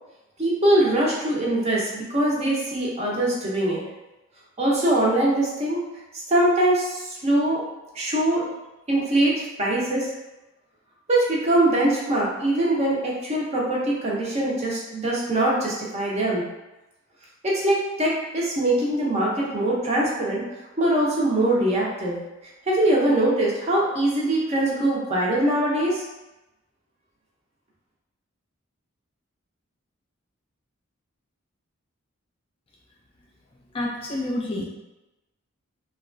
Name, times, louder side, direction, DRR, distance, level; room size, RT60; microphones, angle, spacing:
voice 1, 0.4-3.8 4.6-5.8 6.3-7.6 7.9-8.5 8.9-10.1 11.1-16.4 17.4-20.5 20.8-22.2 22.7-26.0, right 1 dB, 30° right, -4 dB, 0.5 m, -22 dB
voice 2, 33.7-34.6, left 1 dB, 25° left, -3 dB, 0.3 m, -28 dB
2.8 x 2.2 x 2.5 m, 1.0 s
head